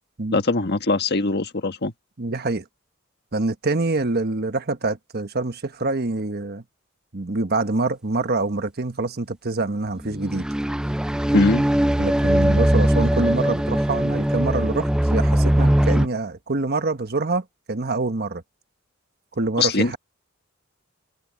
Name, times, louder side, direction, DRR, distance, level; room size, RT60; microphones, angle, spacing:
voice 1, 0.3-1.9 11.3-11.7 19.6-20.0, left 3 dB, 55° left, 1.6 m, -21 dB
voice 2, 2.2-2.6 3.3-6.6 7.1-10.5 12.0-18.4 19.4-20.0, right 3 dB, 50° right, 1.3 m, -25 dB
sound 1, 10.0-16.1, equal, 5° right, 0.3 m, -20 dB
head